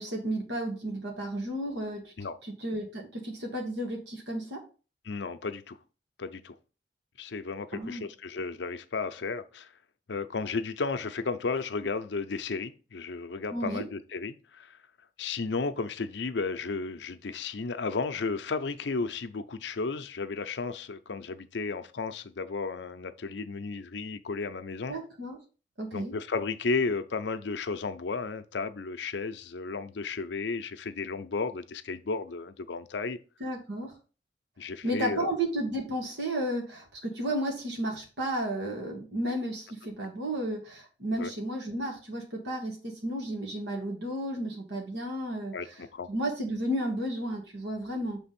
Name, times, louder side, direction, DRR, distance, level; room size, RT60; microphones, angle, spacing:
voice 1, 0.0-2.1 2.6-4.6 7.7-8.0 13.5-13.8 24.9-25.4 25.8-26.1 33.4-33.9 34.8-45.5 46.1-48.2, right 1 dB, 85° right, 1.7 m, -33 dB
voice 2, 5.0-5.8 6.2-6.5 7.2-9.7 10.1-14.8 15.2-25.0 25.9-33.2 34.6-35.3 41.2-41.3 45.5-46.1, left 4 dB, 85° left, 0.6 m, -33 dB
6.0 x 3.5 x 5.8 m
head